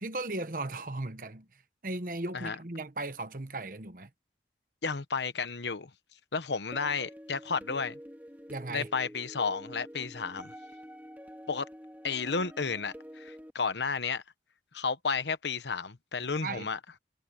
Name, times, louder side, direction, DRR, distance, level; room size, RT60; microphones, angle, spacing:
voice 1, 0.0-1.5 1.8-4.1 8.5-8.9 16.4-16.7, right 2 dB, 50° right, 1.2 m, -36 dB
voice 2, 4.8-5.9 6.3-8.0 8.7-10.5 11.5-11.7 12.0-14.2 14.7-16.8, left 5 dB, 80° left, 1.1 m, -32 dB
sound 1, 6.7-13.5, equal, 10° right, 2.0 m, -47 dB
head